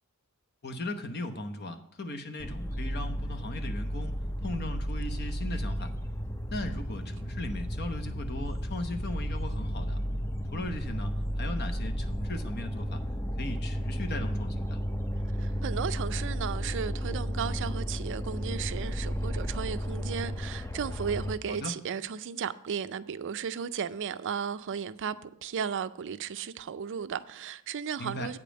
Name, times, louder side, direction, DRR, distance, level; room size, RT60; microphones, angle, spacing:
voice 1, 0.6-4.1 4.4-5.9 6.5-10.0 10.5-13.0 13.4-14.8 21.5-21.7 28.0-28.3, left 2 dB, 50° left, 1.0 m, -38 dB
sound 1, 2.4-21.4, equal, 10° left, 0.5 m, -33 dB
voice 2, 15.4-28.4, right 7 dB, 55° right, 0.4 m, -35 dB
8.4 x 5.2 x 7.5 m
head